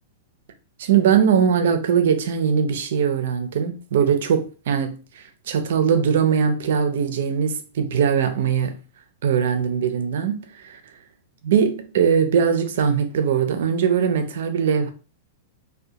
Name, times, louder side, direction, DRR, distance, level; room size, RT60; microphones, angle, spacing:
voice 1, 0.8-8.8 9.2-10.8 11.4-14.9, right 7 dB, 70° right, 0.5 m, -21 dB
2.3 x 2.2 x 2.8 m
hypercardioid pair, 145°, 0 cm